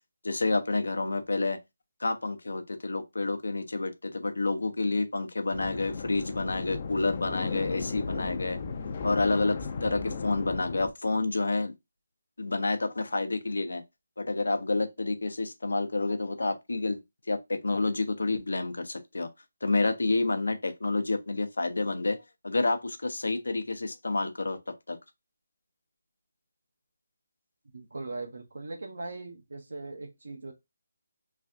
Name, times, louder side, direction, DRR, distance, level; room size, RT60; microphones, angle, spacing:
voice 1, 0.2-1.6 2.0-8.6 9.0-11.7 12.4-13.8 14.2-17.0 17.3-19.3 19.6-22.2 22.4-24.6 24.9-25.0, left 3 dB, 80° left, 0.7 m, -29 dB
Mining Elevator Loop, 5.5-10.9, left 5 dB, 35° left, 0.4 m, -35 dB
voice 2, 27.7-30.5, right 3 dB, 75° right, 0.7 m, -39 dB
3.2 x 2.3 x 2.5 m
figure-of-eight pair, 165°, 0 cm